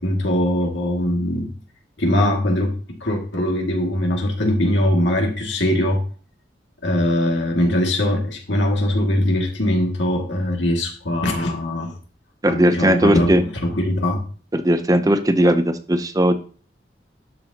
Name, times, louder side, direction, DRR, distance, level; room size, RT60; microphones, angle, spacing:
voice 1, 0.0-1.5 2.0-6.0 6.8-11.9 12.5-14.2, left 1 dB, 85° left, 1 dB, 2.1 m, -21 dB
voice 2, 12.4-13.4 14.5-16.3, right 1 dB, 20° right, 9 dB, 0.6 m, -17 dB
12.0 x 6.1 x 2.9 m, 0.40 s
head